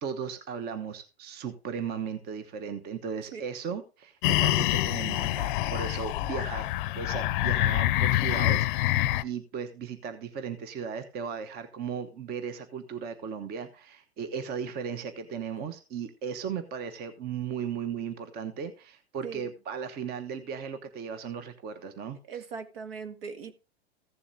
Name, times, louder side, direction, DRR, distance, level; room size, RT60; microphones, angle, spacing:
voice 1, 0.0-6.7 7.0-22.2, right 6 dB, 30° right, 1.1 m, -36 dB
sound 1, 4.2-9.2, left 15 dB, 55° left, 0.6 m, -26 dB
voice 2, 22.3-23.5, right 6 dB, 65° right, 1.7 m, -39 dB
15.5 x 7.0 x 2.7 m
hypercardioid pair, 115°, 31 cm